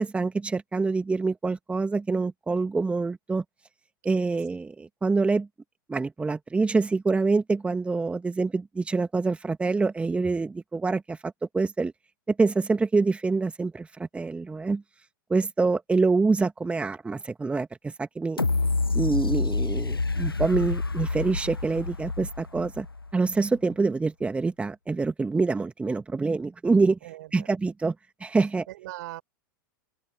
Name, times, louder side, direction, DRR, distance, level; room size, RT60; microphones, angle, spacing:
voice 1, 0.0-3.4 4.0-5.5 5.9-11.9 12.3-14.8 15.3-18.4 18.9-22.9 23.1-27.0 27.3-27.9 28.2-28.7, right 4 dB, 10° right, 1.9 m, -26 dB
sound 1, 18.4-23.3 23.7-23.8, left 3 dB, 90° left, 0.6 m, -28 dB
voice 2, 27.0-27.5 28.7-29.2, right 16 dB, 55° right, 5.6 m, -40 dB
open air
figure-of-eight pair, 95°, 12 cm